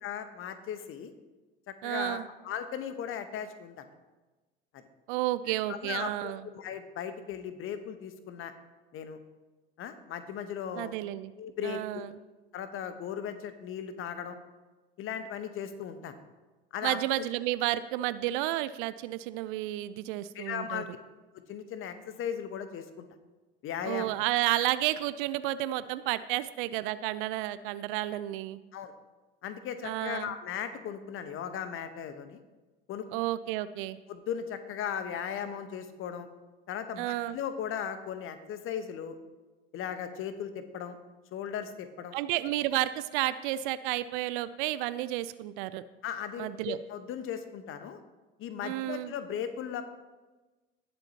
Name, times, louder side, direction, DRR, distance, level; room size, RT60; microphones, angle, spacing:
voice 1, 0.0-1.1 1.7-3.8 4.7-4.8 5.7-8.5 8.9-9.2 9.8-10.9 11.4-12.0 12.5-14.4 15.0-16.2 16.7-17.0 20.3-20.8 21.5-23.0 23.6-24.2 28.7-28.9 29.4-32.4 32.9-33.1 34.1-36.3 36.7-39.1 39.7-41.0 41.3-42.2 46.0-48.0 48.4-49.8, left 8 dB, 45° left, 10 dB, 1.1 m, -37 dB
voice 2, 1.8-2.3 5.1-6.4 10.8-11.3 11.6-12.1 16.8-20.8 23.8-28.6 29.8-30.3 33.1-34.0 37.0-37.4 42.1-45.8 46.4-46.8 48.6-49.1, right 15 dB, 60° right, 15 dB, 0.5 m, -31 dB
18.0 x 7.8 x 2.9 m, 1.2 s
figure-of-eight pair, 60°, 30 cm